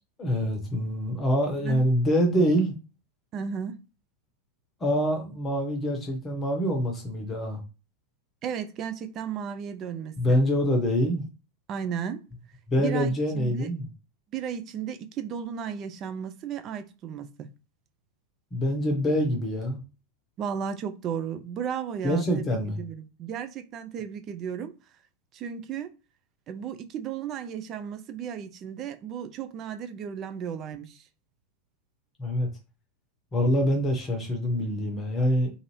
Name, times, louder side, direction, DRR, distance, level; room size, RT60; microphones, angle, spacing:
voice 1, 0.2-2.7 4.8-7.6 10.2-11.2 12.7-13.9 18.5-19.8 22.0-22.8 32.2-32.5 33.3-35.5, equal, 20° left, 0.8 m, -25 dB
voice 2, 3.3-3.8 8.4-10.4 11.7-12.2 12.8-13.7 14.3-17.5 20.4-22.5 22.8-24.7 25.3-25.9 26.5-31.0, right 8 dB, 35° right, 0.4 m, -34 dB
2.5 x 2.5 x 3.1 m
figure-of-eight pair, 90°, 0 cm